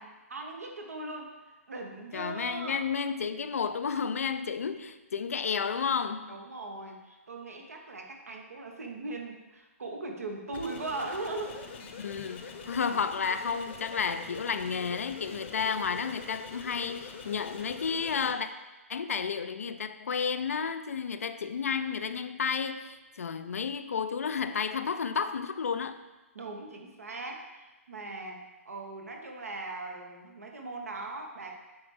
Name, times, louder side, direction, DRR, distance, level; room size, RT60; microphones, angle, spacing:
voice 1, 0.0-1.4 1.7-2.9 6.3-11.6 26.3-31.5, right 2 dB, 75° right, 2 dB, 1.1 m, -39 dB
voice 2, 2.1-6.3 12.0-18.5 18.9-26.0, left 6 dB, 70° left, 10 dB, 0.4 m, -32 dB
sound 1, 10.5-18.3, left 5 dB, 50° left, 0.8 m, -44 dB
8.6 x 3.4 x 3.5 m, 1.1 s
figure-of-eight pair, 125°, 8 cm